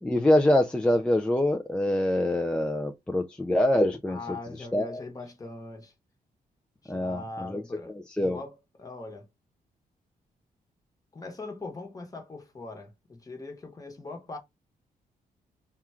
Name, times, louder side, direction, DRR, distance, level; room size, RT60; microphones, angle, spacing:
voice 1, 0.0-5.0 6.9-7.6 8.2-8.4, left 1 dB, 5° left, 0.3 m, -25 dB
voice 2, 4.1-5.9 6.8-9.3 11.1-14.4, left 3 dB, 20° left, 1.0 m, -41 dB
3.6 x 2.3 x 4.3 m
wide cardioid pair, 140°, 16 cm